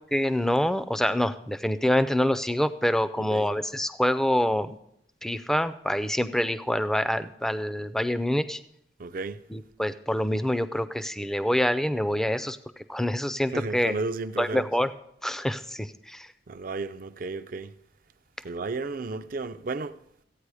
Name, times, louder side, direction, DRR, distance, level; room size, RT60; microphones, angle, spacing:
voice 1, 0.1-4.8 5.2-8.6 9.5-12.6 12.9-13.9 14.4-14.9 15.2-16.3, equal, ahead, 0.4 m, -26 dB
voice 2, 3.2-3.5 9.0-9.4 13.5-14.7 16.5-17.7 18.4-20.0, right 3 dB, 50° right, 0.5 m, -33 dB
15.0 x 8.8 x 4.8 m
head